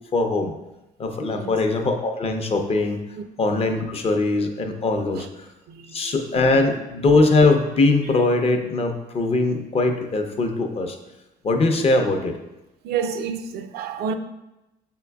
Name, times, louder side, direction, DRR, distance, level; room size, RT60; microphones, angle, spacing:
voice 1, 0.1-0.5 1.0-3.0 3.4-5.5 5.9-11.0 11.4-12.4, left 3 dB, 35° left, 0.6 m, -21 dB
voice 2, 5.7-6.2 8.1-8.2 11.8-11.9 12.8-14.1, right 6 dB, 70° right, 0.4 m, -30 dB
6.2 x 3.7 x 2.3 m
cardioid pair, 110°, 17 cm